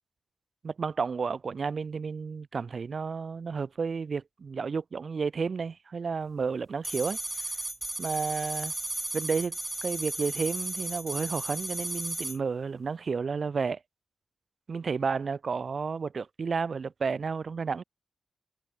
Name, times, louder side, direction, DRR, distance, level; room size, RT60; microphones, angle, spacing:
voice 1, 0.6-7.2 8.0-8.7 9.1-13.8 14.7-17.8, right 5 dB, 45° right, 4.3 m, -31 dB
sound 1, 6.8-12.4, right 1 dB, 10° right, 1.0 m, -35 dB
wide cardioid pair, 135°, 0 cm